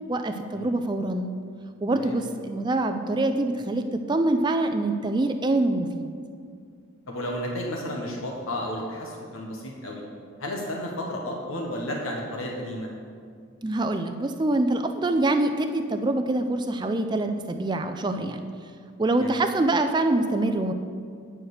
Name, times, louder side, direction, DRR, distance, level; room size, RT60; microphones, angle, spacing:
voice 1, 0.1-1.3 1.8-6.2 13.6-18.5 19.0-20.7, right 2 dB, 20° right, 7 dB, 0.3 m, -25 dB
voice 2, 7.1-10.0 10.4-12.9 19.2-19.4, left 1 dB, 80° left, 0 dB, 1.1 m, -32 dB
8.7 x 4.7 x 6.4 m, 2.2 s
head